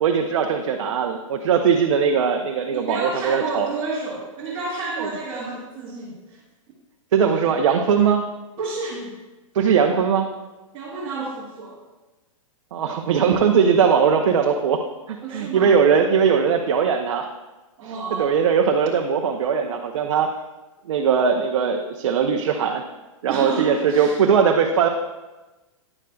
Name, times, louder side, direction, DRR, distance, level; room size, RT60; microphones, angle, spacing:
voice 1, 0.0-3.7 5.0-5.1 7.1-8.2 9.5-10.3 12.7-14.8 15.1-17.3 17.8-20.3 20.9-22.8 23.2-24.9, right 6 dB, 60° right, 3 dB, 0.6 m, -20 dB
voice 2, 2.7-6.4 8.6-9.2 10.7-11.8 15.2-15.7 17.8-18.3 23.3-24.2, right 3 dB, 25° right, -8 dB, 1.4 m, -30 dB
9.6 x 6.3 x 2.3 m, 1.1 s
hypercardioid pair, 170°, 17 cm